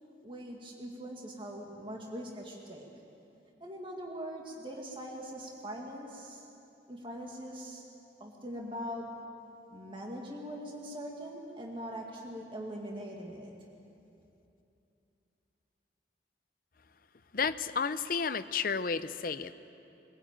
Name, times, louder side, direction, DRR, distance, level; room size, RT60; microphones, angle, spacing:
voice 1, 0.2-2.9 3.6-6.5 6.9-7.9 8.2-9.4 9.7-13.5, equal, 30° right, -1 dB, 2.1 m, -42 dB
voice 2, 17.3-19.5, left 5 dB, 50° left, 12 dB, 0.7 m, -32 dB
23.0 x 15.5 x 9.0 m, 2.8 s
head